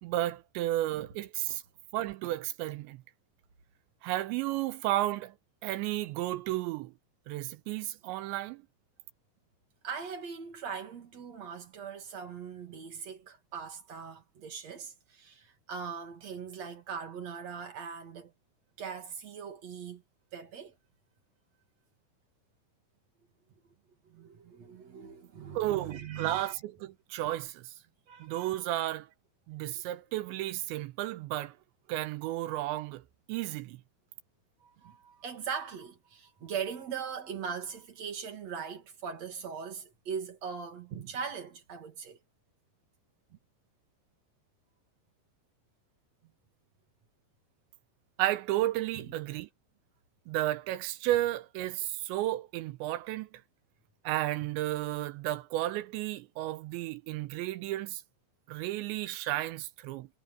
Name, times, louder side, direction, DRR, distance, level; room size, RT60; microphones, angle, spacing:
voice 1, 0.0-1.6 1.9-3.0 4.0-5.3 5.6-6.9 7.3-8.6 25.6-26.5 27.1-27.6 28.2-29.1 29.5-31.5 31.9-33.0 33.3-33.8 48.2-49.5 50.3-53.3 54.1-58.0 58.5-60.1, right 15 dB, 85° right, 2.9 m, -32 dB
voice 2, 9.8-18.3 18.8-20.0 20.3-20.7 24.0-26.6 28.1-28.6 34.6-42.2 48.9-49.1, right 6 dB, 45° right, 2.9 m, -40 dB
omnidirectional pair, 5.4 m